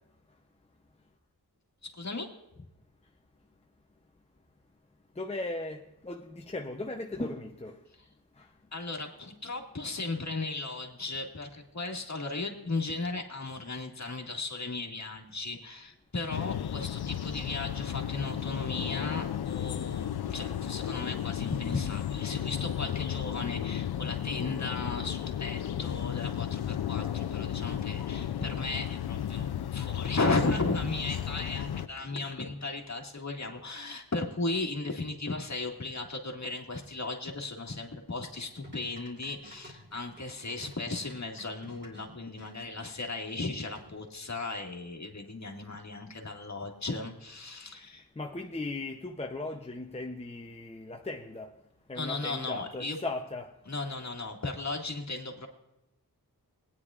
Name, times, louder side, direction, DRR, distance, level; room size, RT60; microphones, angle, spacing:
voice 1, 1.8-2.3 8.7-48.1 52.0-53.0 53.7-55.5, left 3 dB, 45° left, 1.9 m, -36 dB
voice 2, 5.2-7.8 48.2-51.5 51.9-53.5, left 2 dB, 15° left, 0.7 m, -37 dB
sound 1, 16.3-31.9, left 10 dB, 80° left, 0.5 m, -34 dB
sound 2, 38.2-42.5 43.7-44.2, left 1 dB, 30° right, 3.3 m, -52 dB
19.5 x 9.8 x 2.4 m
wide cardioid pair, 80°, 38 cm